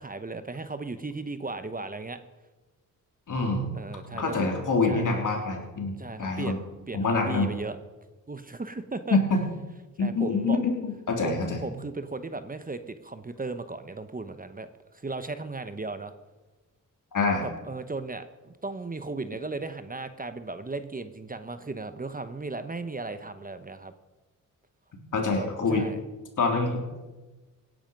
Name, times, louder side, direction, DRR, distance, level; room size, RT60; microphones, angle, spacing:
voice 1, 0.0-2.2 3.7-4.5 4.9-5.1 6.0-7.8 8.3-9.2 10.0-10.6 11.2-16.1 17.6-23.9 25.3-26.0, right 3 dB, 25° right, 11 dB, 1.0 m, -36 dB
voice 2, 3.3-3.7 4.1-6.6 6.9-7.5 9.1-9.4 10.0-11.6 17.1-17.4 25.1-25.9 26.4-26.8, left 3 dB, 70° left, 1 dB, 3.5 m, -26 dB
17.5 x 10.0 x 5.3 m, 1.2 s
cardioid pair, 65°, 33 cm